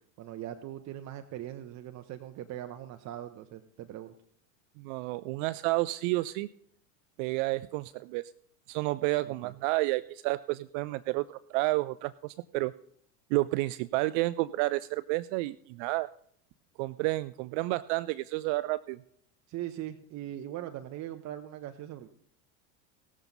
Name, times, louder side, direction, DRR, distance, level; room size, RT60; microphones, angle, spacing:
voice 1, 0.2-4.1 9.3-9.5 19.5-22.1, right 12 dB, 40° right, 8 dB, 0.8 m, -40 dB
voice 2, 4.8-6.5 7.2-8.3 8.7-12.7 13.3-16.1 16.8-19.0, right 20 dB, 60° right, 17 dB, 0.5 m, -30 dB
18.5 x 7.2 x 4.0 m, 0.66 s
supercardioid pair, 105°, 42 cm